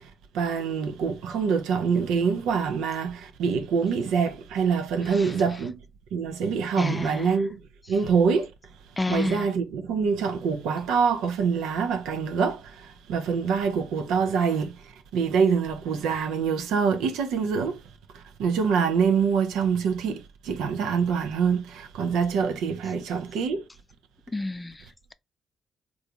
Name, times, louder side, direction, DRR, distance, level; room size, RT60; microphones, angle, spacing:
voice 1, 0.3-5.7 6.1-7.5 7.9-8.5 9.1-12.6 13.1-14.7 15.1-17.8 18.4-23.6, right 6 dB, 80° right, 0.6 m, -25 dB
voice 2, 5.0-5.4 6.7-7.4 9.0-9.5 24.3-24.8, left 2 dB, 25° left, 0.4 m, -30 dB
3.4 x 2.6 x 2.7 m
supercardioid pair, 50°, 0 cm